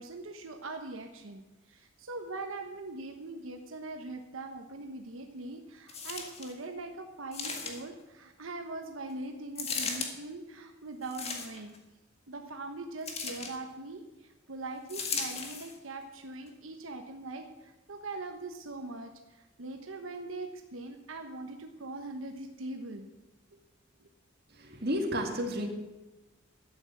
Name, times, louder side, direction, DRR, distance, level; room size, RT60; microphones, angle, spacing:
voice 1, 0.0-11.8 12.3-23.1 24.0-24.1, right 2 dB, 90° right, 5 dB, 1.1 m, -42 dB
sound 1, 5.9-6.5 7.3-8.0 9.5-10.1 11.0-11.8 13.0-13.6 14.9-15.7 16.5-16.6, left 5 dB, 30° left, 1.8 m, -36 dB
voice 2, 24.6-25.7, equal, 50° right, 3 dB, 2.1 m, -31 dB
12.0 x 8.8 x 7.4 m, 1.1 s
head